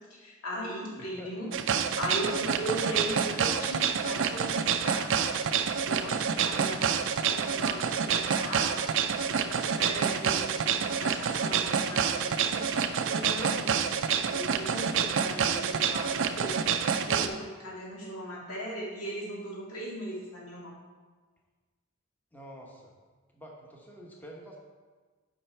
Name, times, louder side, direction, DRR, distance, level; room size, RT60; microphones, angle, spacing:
voice 1, 0.1-1.5 2.0-5.3 5.8-8.8 9.2-13.9 14.2-20.7, equal, 90° left, -4 dB, 2.1 m, -38 dB
voice 2, 1.0-1.6 6.5-6.7 22.3-22.9 23.3-24.6, equal, 10° left, -1 dB, 0.9 m, -48 dB
sound 1, 1.5-17.3, right 7 dB, 60° right, 0.4 m, -28 dB
7.7 x 5.5 x 4.4 m, 1.4 s
head